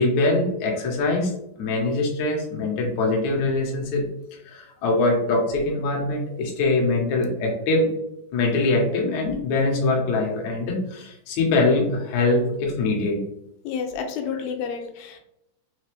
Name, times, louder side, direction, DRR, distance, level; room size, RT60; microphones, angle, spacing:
voice 1, 0.0-1.3 1.6-4.1 4.5-7.9 8.3-13.2, left 2 dB, 65° left, 0 dB, 2.0 m, -23 dB
voice 2, 13.6-15.2, left 6 dB, 90° left, 4 dB, 2.5 m, -30 dB
5.8 x 2.6 x 3.2 m, 0.81 s
omnidirectional pair, 4.3 m